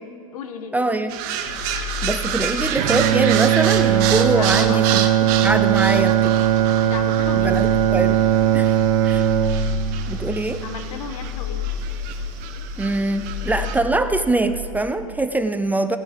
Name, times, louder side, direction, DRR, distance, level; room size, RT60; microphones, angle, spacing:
voice 1, 0.0-1.0 4.4-4.9 6.8-7.6 10.6-11.6, left 7 dB, 75° left, 8 dB, 1.2 m, -34 dB
voice 2, 0.7-1.2 2.0-5.0 5.4-6.4 7.4-8.2 8.5-8.7 9.0-9.3 10.1-10.6 12.8-16.0, right 2 dB, 10° right, 9 dB, 0.5 m, -23 dB
sound 1, 1.1-13.8, right 9 dB, 55° right, 1.1 m, -29 dB
sound 2, 1.4-15.1, left 4 dB, 30° left, 1.9 m, -32 dB
Bowed string instrument, 2.8-11.0, right 11 dB, 70° right, 0.7 m, -19 dB
17.5 x 6.8 x 5.2 m, 2.3 s
hypercardioid pair, 100°, 19 cm